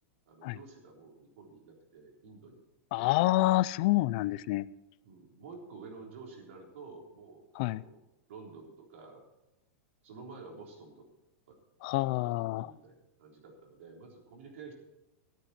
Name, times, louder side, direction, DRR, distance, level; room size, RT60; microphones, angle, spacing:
voice 1, 0.3-2.7 3.0-3.1 5.0-8.0 8.3-9.2 10.0-11.1 12.2-14.7, right 4 dB, 65° right, 0 dB, 3.7 m, -50 dB
voice 2, 2.9-4.7 7.6-7.8 11.8-12.7, left 18 dB, 35° left, 17 dB, 0.4 m, -27 dB
13.0 x 13.0 x 4.4 m, 0.94 s
supercardioid pair, 175°, 8 cm